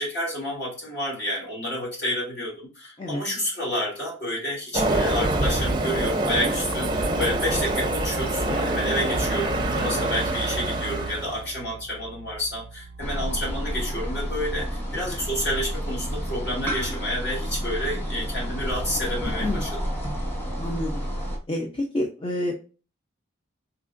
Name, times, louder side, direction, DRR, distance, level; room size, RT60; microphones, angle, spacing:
voice 1, 0.0-19.7, left 1 dB, 55° left, -4 dB, 2.5 m, -30 dB
Train, 4.7-11.5, right 1 dB, 20° right, 0.5 m, -26 dB
sound 1, 5.3-13.8, right 3 dB, 70° right, 0.4 m, -37 dB
sound 2, 13.0-21.4, equal, 10° left, 1.2 m, -30 dB
voice 2, 20.6-21.0 21.5-22.5, left 1 dB, 25° left, 0 dB, 0.6 m, -28 dB
4.5 x 3.8 x 2.5 m, 0.34 s
head